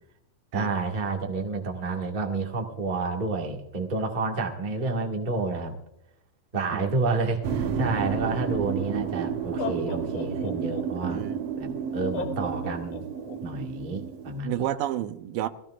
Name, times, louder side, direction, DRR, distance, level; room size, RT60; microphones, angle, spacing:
voice 1, 0.5-5.8 6.5-11.2 11.6-13.0 13.4-14.7, right 3 dB, 25° right, 1.0 m, -29 dB
sound 1, 7.4-14.4, right 7 dB, 65° right, 1.6 m, -31 dB
Laughter, 8.7-8.8 9.4-11.1 12.1-13.4, left 3 dB, 55° left, 2.7 m, -35 dB
voice 2, 11.0-11.4 14.4-15.5, right 12 dB, 85° right, 2.5 m, -30 dB
22.0 x 16.5 x 2.4 m
omnidirectional pair, 3.9 m